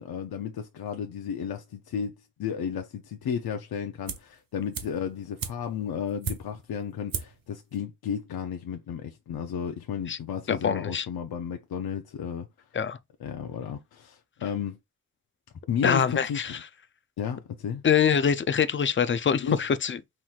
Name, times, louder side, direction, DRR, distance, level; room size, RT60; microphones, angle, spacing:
voice 1, 0.0-12.5 13.2-14.8 15.7-16.4 17.2-17.8 19.4-19.6, left 7 dB, 85° left, 0.6 m, -33 dB
sound 1, 4.1-4.4 4.7-6.7 7.1-7.5 7.7-7.8, right 6 dB, 70° right, 0.9 m, -36 dB
voice 2, 10.5-11.1 12.7-13.0 15.8-16.6 17.8-20.0, left 7 dB, 35° left, 0.4 m, -24 dB
5.6 x 3.1 x 2.4 m
wide cardioid pair, 105°, 36 cm